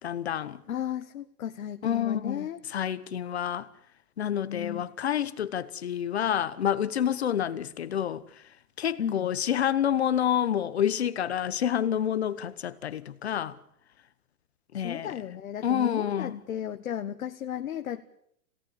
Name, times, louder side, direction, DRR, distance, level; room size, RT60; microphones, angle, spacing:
voice 1, 0.0-0.6 1.8-3.7 4.2-8.2 8.8-13.6 14.7-15.1 15.6-16.4, left 9 dB, 40° left, 1.0 m, -28 dB
voice 2, 0.7-2.6 4.4-4.8 7.5-7.6 9.0-9.3 14.7-18.0, left 9 dB, 60° left, 1.4 m, -34 dB
26.0 x 18.0 x 8.6 m
hypercardioid pair, 180°, 48 cm